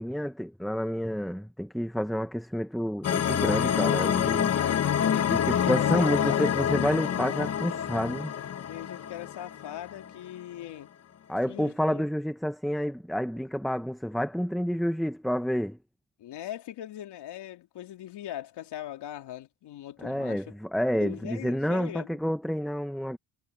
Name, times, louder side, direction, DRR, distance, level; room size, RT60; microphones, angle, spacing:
voice 1, 0.0-4.5 5.3-8.3 11.3-15.8 20.0-23.2, equal, ahead, 0.7 m, -29 dB
sound 1, 3.0-10.1, left 9 dB, 35° left, 0.9 m, -27 dB
voice 2, 3.5-3.8 4.3-6.5 8.7-10.9 11.5-12.0 16.2-20.6 20.9-22.2, left 12 dB, 75° left, 2.8 m, -40 dB
cardioid pair, 145°, 41 cm